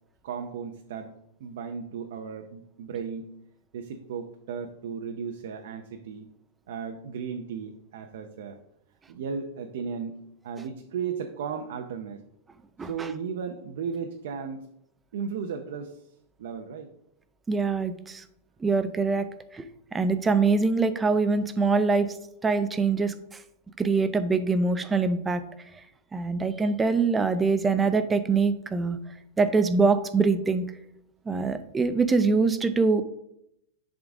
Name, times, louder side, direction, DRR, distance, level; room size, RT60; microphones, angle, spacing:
voice 1, 0.2-3.3 3.7-6.3 6.7-8.6 9.1-12.2 12.8-14.7 15.1-16.1 16.4-16.9, right 6 dB, 70° right, 4 dB, 0.6 m, -35 dB
voice 2, 17.5-18.2 18.6-19.3 19.5-19.6 19.9-22.2 22.4-23.4 23.8-25.4 26.1-29.0 29.4-30.6 31.3-33.0, right 4 dB, 10° right, 11 dB, 0.4 m, -24 dB
10.5 x 3.7 x 3.6 m, 0.78 s
supercardioid pair, 170°, 0 cm